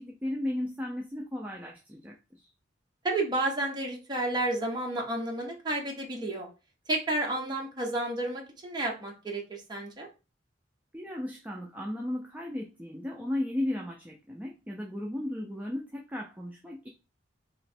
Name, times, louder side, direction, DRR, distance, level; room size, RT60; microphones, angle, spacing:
voice 1, 0.0-2.5 10.9-16.9, left 1 dB, 10° right, 0 dB, 0.5 m, -35 dB
voice 2, 3.0-6.5 6.9-10.1, right 2 dB, 25° right, 0 dB, 0.9 m, -31 dB
3.1 x 3.1 x 4.2 m, 0.32 s
head